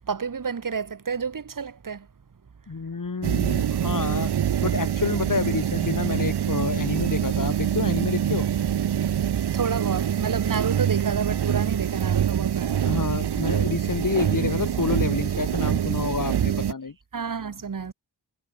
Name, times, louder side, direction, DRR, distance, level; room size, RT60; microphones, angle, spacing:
voice 1, 0.0-2.1 9.5-13.0 17.1-17.9, right 6 dB, 45° right, 1.3 m, -30 dB
voice 2, 2.7-4.3 4.6-8.5 12.8-16.9, left 4 dB, 45° left, 2.5 m, -28 dB
sound 1, 3.2-16.7, right 9 dB, 60° right, 0.8 m, -25 dB
wide cardioid pair, 75°, 44 cm